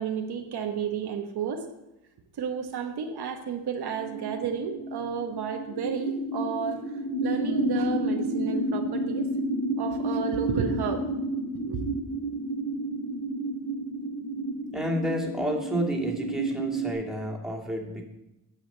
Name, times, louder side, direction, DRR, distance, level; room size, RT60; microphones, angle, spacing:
voice 1, 0.0-1.7 2.4-9.3 9.8-11.0 11.5-11.8, right 7 dB, 75° right, 5 dB, 1.1 m, -32 dB
sound 1, 3.8-16.9, right 1 dB, 65° left, 3.4 m, -31 dB
voice 2, 14.7-18.0, equal, ahead, -1 dB, 2.1 m, -30 dB
9.5 x 5.1 x 7.8 m, 0.93 s
cardioid pair, 80°, 39 cm